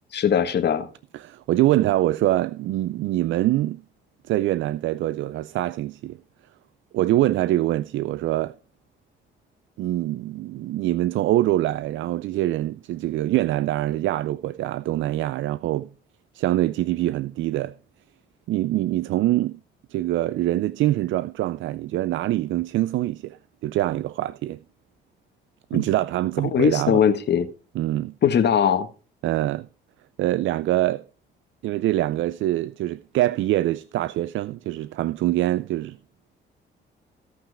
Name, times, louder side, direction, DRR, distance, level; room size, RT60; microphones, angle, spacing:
voice 1, 0.1-0.9 25.7-25.8 26.4-27.5 28.2-28.9, left 8 dB, 60° left, 1.6 m, -20 dB
voice 2, 1.1-3.8 4.3-6.2 6.9-8.5 9.8-15.9 16.3-17.7 18.5-19.6 19.9-23.4 23.6-24.6 25.7-27.0 27.8-28.1 29.2-29.7 30.2-31.0 31.6-36.0, right 15 dB, 75° right, 0.5 m, -24 dB
15.5 x 5.9 x 4.9 m
cardioid pair, 90°, 20 cm